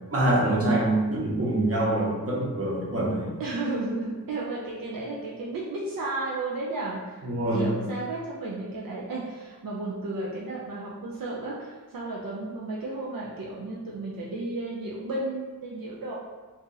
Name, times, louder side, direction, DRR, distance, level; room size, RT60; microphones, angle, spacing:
voice 1, 0.1-3.4 7.2-7.8, right 1 dB, 45° right, -5 dB, 1.0 m, -25 dB
voice 2, 3.4-16.1, right 2 dB, 80° right, -5 dB, 0.5 m, -33 dB
2.7 x 2.4 x 3.8 m, 1.3 s
wide cardioid pair, 65°, 34 cm